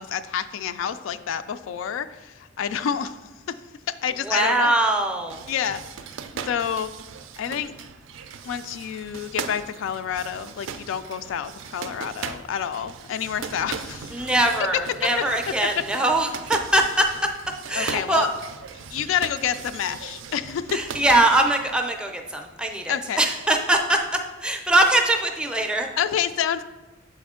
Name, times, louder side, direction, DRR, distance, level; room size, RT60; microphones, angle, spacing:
voice 1, 0.0-3.2 3.5-3.6 4.0-4.8 5.5-5.8 6.4-6.9 7.4-7.7 8.4-14.2 14.7-14.8 17.7-18.3 18.9-20.8 22.9-23.2 26.0-26.7, left 8 dB, 80° left, 13 dB, 0.3 m, -28 dB
voice 2, 4.2-5.4 14.1-17.1 17.7-18.3 20.7-24.0 24.4-25.9, right 1 dB, 5° right, 4 dB, 0.4 m, -22 dB
sound 1, 5.3-21.8, right 6 dB, 80° right, 0.4 m, -38 dB
6.8 x 4.2 x 3.6 m, 1.2 s
head